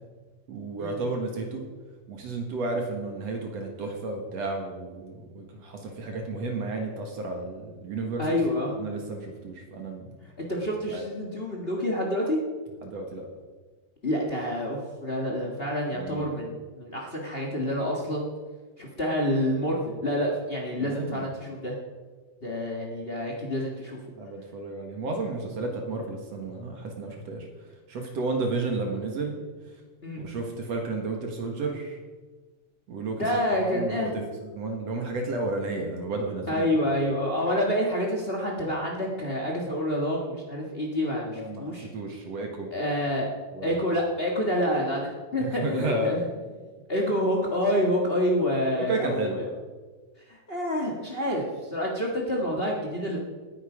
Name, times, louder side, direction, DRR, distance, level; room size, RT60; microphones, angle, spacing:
voice 1, 0.5-1.6 2.1-8.3 8.7-10.2 10.9-11.0 12.8-13.3 15.9-16.3 20.8-21.3 24.2-27.5 27.9-29.7 30.2-32.0 32.9-36.7 41.2-42.7 43.5-44.0 45.4-46.3 48.8-49.4, right 2 dB, 55° right, 2 dB, 2.3 m, -32 dB
voice 2, 8.2-8.7 10.4-12.4 14.0-18.3 18.8-21.7 22.4-24.0 30.0-30.2 33.2-34.2 36.5-41.9 42.7-43.3 43.6-46.3 46.9-49.5 50.3-53.2, equal, 55° left, -1 dB, 0.6 m, -28 dB
18.5 x 9.8 x 5.0 m, 1.4 s
omnidirectional pair, 4.3 m